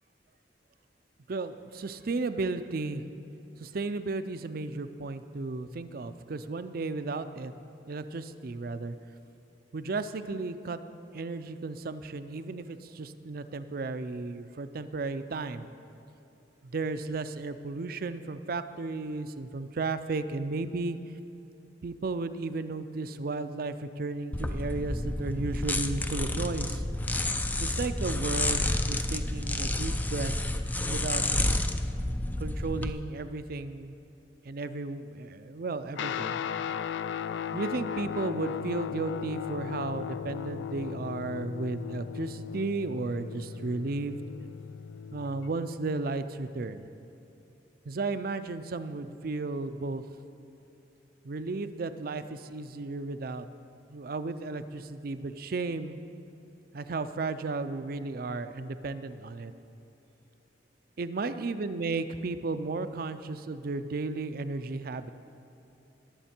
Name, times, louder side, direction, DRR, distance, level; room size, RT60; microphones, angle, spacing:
voice 1, 1.3-3.0 3.6-7.5 7.9-9.0 9.7-10.8 11.1-15.7 16.6-21.0 21.8-26.8 27.6-30.3 30.9-31.7 32.4-33.9 34.4-36.4 37.5-44.2 45.1-46.8 47.9-50.0 51.2-53.5 53.9-56.0 56.7-59.5 61.0-65.1, right 3 dB, 55° right, 11 dB, 0.5 m, -34 dB
sound 1, 24.3-32.9, left 1 dB, 10° left, 0.4 m, -30 dB
Guitar, 35.9-45.6, left 8 dB, 85° left, 0.3 m, -36 dB
20.5 x 7.3 x 4.4 m, 2.9 s
head